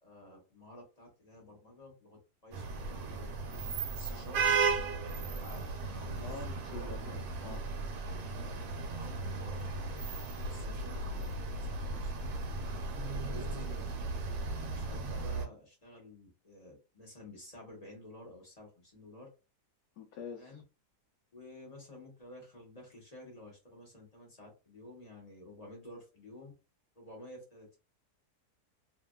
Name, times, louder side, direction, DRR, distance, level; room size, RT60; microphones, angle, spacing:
voice 1, 0.0-4.5 5.0-6.3 6.7-6.9 8.5-8.6 8.9-10.0 10.3-12.4 13.1-14.1 14.5-19.3 20.4-20.6 21.3-26.5 26.9-27.8, left 1 dB, 25° left, 1.0 m, -52 dB
sound 1, 2.5-15.4, right 4 dB, 70° right, 1.1 m, -36 dB
voice 2, 6.2-7.7 20.0-20.6, left 5 dB, 80° left, 1.1 m, -46 dB
2.9 x 2.5 x 2.2 m
omnidirectional pair, 1.8 m